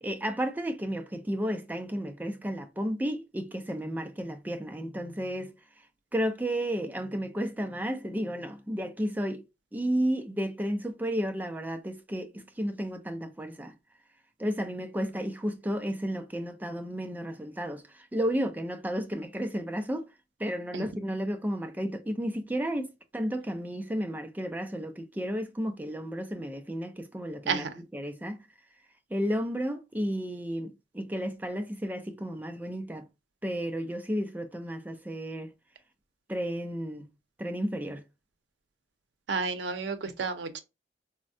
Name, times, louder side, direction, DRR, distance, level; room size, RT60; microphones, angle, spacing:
voice 1, 0.0-5.5 6.1-9.4 9.7-13.7 14.4-20.0 20.4-28.4 29.1-33.0 33.4-35.5 36.3-37.0 37.4-38.0, equal, 10° right, 0.4 m, -32 dB
voice 2, 39.3-40.6, right 5 dB, 85° right, 0.5 m, -31 dB
3.3 x 2.1 x 2.6 m
head